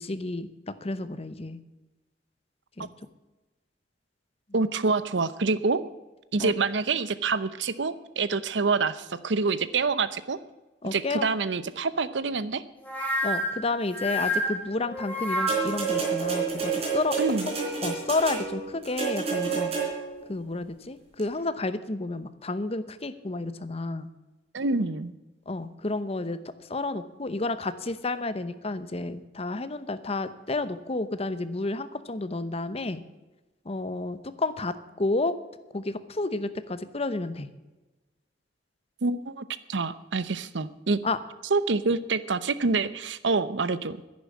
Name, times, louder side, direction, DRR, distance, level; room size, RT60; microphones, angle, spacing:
voice 1, 0.0-1.6 2.8-2.9 6.4-6.5 10.8-11.3 13.2-17.2 17.8-19.7 20.3-24.1 25.5-26.4 26.7-33.0 33.6-35.4 35.7-37.5 41.0-41.2, left 2 dB, 35° left, 12 dB, 0.8 m, -31 dB
voice 2, 4.5-5.8 6.3-10.4 10.8-12.6 17.2-17.5 24.5-25.1 39.0-41.0 41.5-44.0, right 4 dB, 80° right, 15 dB, 0.8 m, -26 dB
sound 1, 12.8-15.9, equal, 10° left, 3.5 m, -29 dB
sound 2, 15.5-20.2 21.2-21.3, right 6 dB, 35° right, 4.1 m, -29 dB
10.5 x 10.5 x 8.4 m, 1.1 s
head